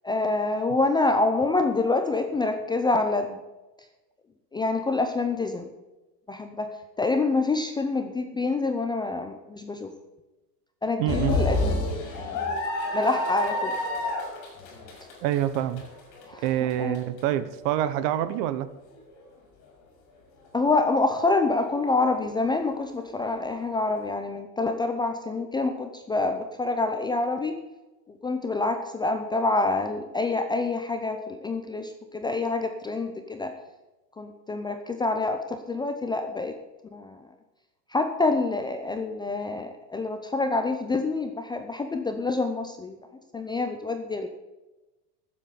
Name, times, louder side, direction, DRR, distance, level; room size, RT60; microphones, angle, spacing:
voice 1, 0.0-3.4 4.5-5.7 6.3-9.9 10.8-11.8 12.2-12.5 12.9-13.8 16.3-16.4 16.8-17.0 20.5-27.6 28.2-33.5 34.2-36.5 36.9-37.2 37.9-43.0 43.3-44.3, left 3 dB, 10° left, 6 dB, 0.6 m, -27 dB
voice 2, 11.0-11.4 15.2-15.8 16.4-18.7, right 12 dB, 50° right, 14 dB, 1.1 m, -26 dB
sound 1, 11.1-17.2 17.7-17.8 18.9-19.2, left 2 dB, 35° left, 4.7 m, -29 dB
12.0 x 7.7 x 8.4 m, 1.1 s
supercardioid pair, 135°, 49 cm